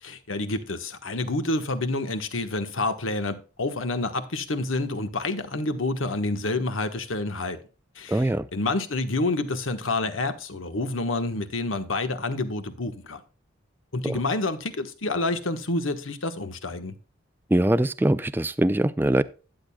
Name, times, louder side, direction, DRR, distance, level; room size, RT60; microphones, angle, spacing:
voice 1, 0.0-7.6 7.9-13.2 13.9-16.9, left 2 dB, 80° left, 1.2 m, -28 dB
voice 2, 8.1-8.5 14.0-14.2 17.5-19.2, right 1 dB, 10° right, 0.3 m, -22 dB
13.0 x 8.8 x 2.3 m
head